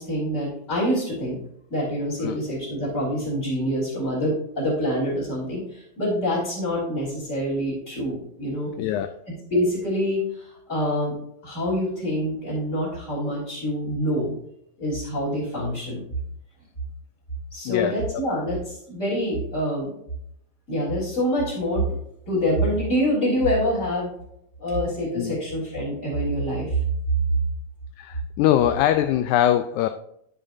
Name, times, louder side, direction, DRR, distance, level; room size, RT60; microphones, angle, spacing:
voice 1, 0.0-1.4 1.7-8.7 9.5-11.1 11.4-14.3 14.8-16.0 17.5-19.9 20.7-21.9 22.3-24.1 24.6-26.8 28.8-29.0, equal, 20° left, -7 dB, 3.8 m, -26 dB
voice 2, 8.8-9.2 17.7-18.0 25.2-25.4 28.0-29.9, left 12 dB, 80° left, 9 dB, 1.8 m, -22 dB
10.5 x 9.1 x 2.7 m, 0.73 s
omnidirectional pair, 3.8 m